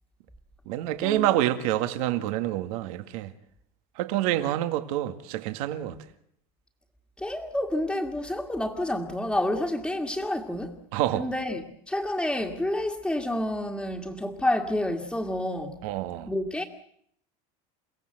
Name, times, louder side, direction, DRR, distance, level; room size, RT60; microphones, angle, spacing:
voice 1, 0.7-3.3 4.0-5.9 10.9-11.3 15.8-16.3, right 13 dB, 70° right, 2.0 m, -27 dB
voice 2, 7.2-10.8 11.1-15.8 16.3-16.6, left 1 dB, 5° left, 2.0 m, -29 dB
30.0 x 17.0 x 7.9 m
supercardioid pair, 150°, 19 cm